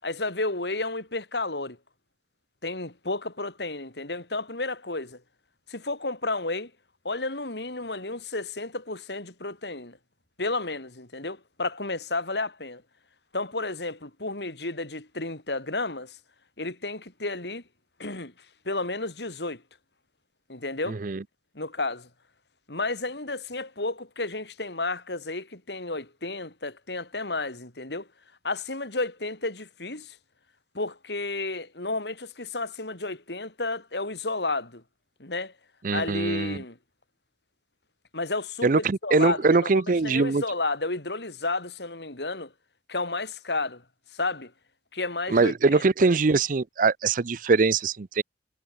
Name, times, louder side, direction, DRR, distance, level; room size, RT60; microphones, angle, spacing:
voice 1, 0.0-1.8 2.6-5.2 5.7-6.7 7.0-10.0 10.4-12.8 13.3-16.2 16.6-17.6 18.0-18.3 18.6-19.6 20.5-21.0 21.5-22.1 22.7-28.1 28.4-30.2 30.7-34.8 35.2-35.5 35.9-36.8 38.1-39.7 40.0-42.5 42.9-43.8 44.1-44.5 44.9-46.1, left 2 dB, 75° left, 4.1 m, -32 dB
voice 2, 20.9-21.2 35.8-36.6 38.6-40.4 45.3-48.2, right 4 dB, 50° right, 0.6 m, -22 dB
head